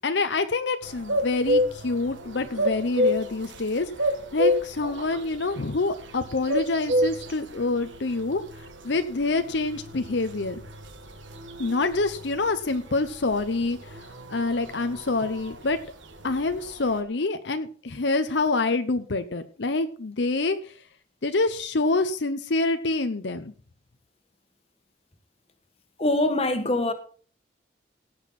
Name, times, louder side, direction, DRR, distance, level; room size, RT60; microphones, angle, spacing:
voice 1, 0.0-3.9 4.3-8.4 8.8-10.6 11.6-14.0 14.3-15.8 16.2-20.8 21.2-23.5, left 3 dB, 70° left, 0.8 m, -26 dB
sound 1, 0.8-17.0, equal, 90° right, 1.5 m, -31 dB
voice 2, 26.0-26.9, left 1 dB, 30° left, 1.4 m, -23 dB
17.5 x 8.1 x 4.3 m
head